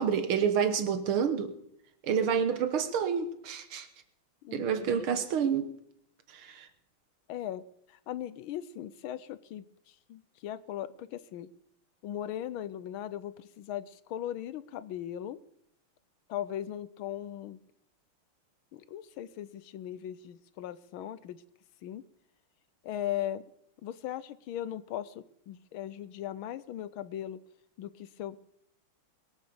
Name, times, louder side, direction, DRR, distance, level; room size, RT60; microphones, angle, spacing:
voice 1, 0.0-1.6 2.0-3.9 4.5-5.7 6.3-6.7, right 7 dB, 85° right, 9 dB, 2.1 m, -28 dB
voice 2, 4.4-5.2 7.3-7.6 7.9-9.7 10.1-11.5 12.0-15.4 16.3-17.6 18.7-21.4 21.8-22.0 22.8-23.4 23.8-27.4 27.8-28.5, left 11 dB, 75° left, 16 dB, 1.5 m, -38 dB
22.0 x 8.3 x 7.0 m, 0.71 s
omnidirectional pair, 2.3 m